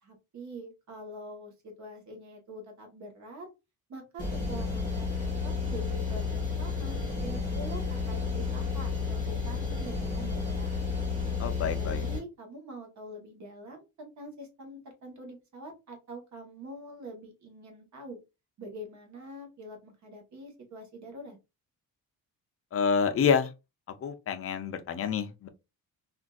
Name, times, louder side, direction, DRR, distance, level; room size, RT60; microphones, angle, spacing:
voice 1, 0.0-3.5 3.9-10.7 11.7-18.2 18.6-21.4, right 1 dB, 50° right, 1.1 m, -45 dB
sound 1, 4.2-12.2, left 4 dB, 15° right, 1.9 m, -31 dB
voice 2, 11.4-12.0 22.7-23.5 24.0-25.5, left 6 dB, 40° left, 0.5 m, -28 dB
3.6 x 2.5 x 2.3 m
cardioid pair, 165°, 37 cm